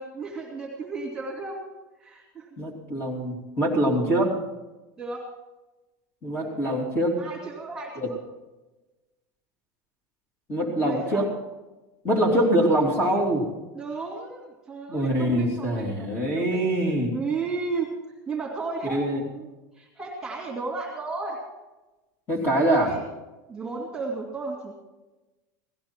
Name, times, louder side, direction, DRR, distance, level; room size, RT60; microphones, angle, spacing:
voice 1, 0.0-1.6 2.0-2.5 5.0-5.3 6.4-6.8 7.2-8.2 10.8-11.3 13.7-16.6 17.1-17.9 18.3-19.5 19.8-21.4 22.7-23.0 23.5-24.7, right 4 dB, 5° right, -3 dB, 2.6 m, -34 dB
voice 2, 2.6-4.4 6.2-7.2 8.0-8.1 10.5-11.3 12.0-13.5 14.9-17.1 18.9-19.3 22.3-22.9, right 1 dB, 20° left, 0 dB, 3.2 m, -24 dB
17.5 x 14.0 x 4.5 m, 1.1 s
supercardioid pair, 170°, 10 cm